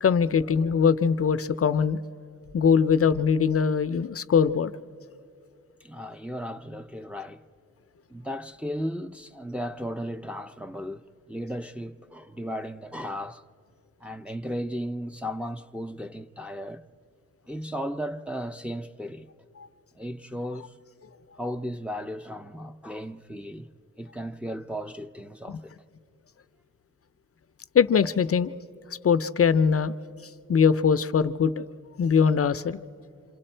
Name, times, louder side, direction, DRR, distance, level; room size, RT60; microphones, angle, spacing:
voice 1, 0.0-2.0 2.5-4.7 19.6-19.7 25.5-25.6 27.7-28.5 29.0-29.9 30.5-31.7 32.0-32.8, left 6 dB, 45° left, 0.5 m, -22 dB
voice 2, 5.8-7.4 8.1-13.4 14.0-16.9 17.5-19.3 19.9-20.8 21.4-23.7 24.0-25.7, equal, 5° right, 0.5 m, -35 dB
27.5 x 27.0 x 4.4 m
wide cardioid pair, 85°, 31 cm